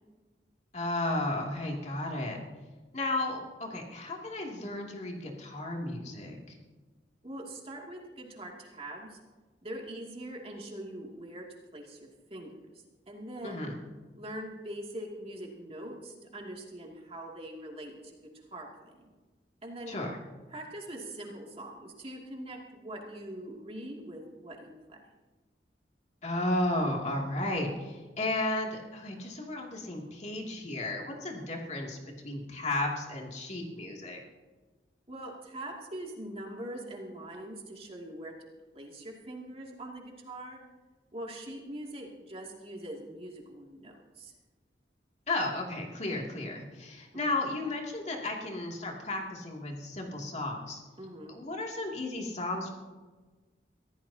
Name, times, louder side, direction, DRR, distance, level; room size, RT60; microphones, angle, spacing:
voice 1, 0.7-2.4 2.9-6.4 13.4-13.7 19.9-20.2 26.2-32.0 32.2-34.2 45.3-50.8 51.3-52.7, left 2 dB, 40° left, 0 dB, 2.7 m, -33 dB
voice 2, 7.2-9.2 9.6-11.4 11.7-12.0 12.3-12.6 13.1-13.7 14.1-18.9 19.6-20.0 20.5-25.0 35.1-38.3 38.7-40.6 41.1-44.3 47.1-47.4 51.0-51.3, right 1 dB, 35° right, -1 dB, 2.6 m, -42 dB
24.5 x 16.0 x 2.9 m, 1.3 s
head